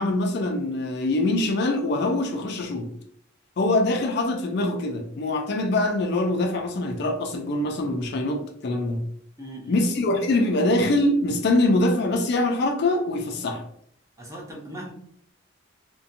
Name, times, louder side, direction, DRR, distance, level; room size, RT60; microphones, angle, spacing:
voice 1, 0.0-2.9 3.6-9.0 9.7-13.7, left 2 dB, 55° left, 0.4 m, -24 dB
voice 2, 9.4-9.8 14.2-14.9, right 1 dB, 15° right, 0.6 m, -38 dB
2.5 x 2.2 x 2.6 m
head